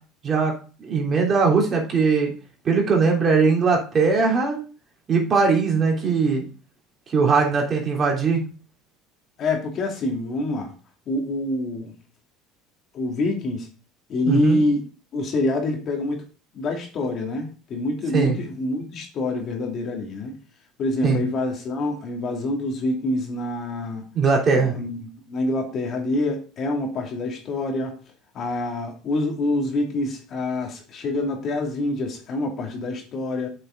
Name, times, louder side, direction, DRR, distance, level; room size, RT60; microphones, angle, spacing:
voice 1, 0.8-2.3 2.6-4.6 5.1-6.4 7.1-8.4 14.2-14.6 18.1-18.4 21.0-21.2 24.1-24.7, right 4 dB, 40° right, 0 dB, 3.4 m, -20 dB
voice 2, 9.4-10.7 11.1-11.9 12.9-13.7 14.1-14.8 15.1-16.2 16.5-20.3 20.8-24.0 24.5-25.0 25.3-27.9 28.3-33.5, left 2 dB, 50° left, 2 dB, 2.7 m, -26 dB
7.9 x 6.6 x 3.9 m, 0.36 s
supercardioid pair, 85°, 0 cm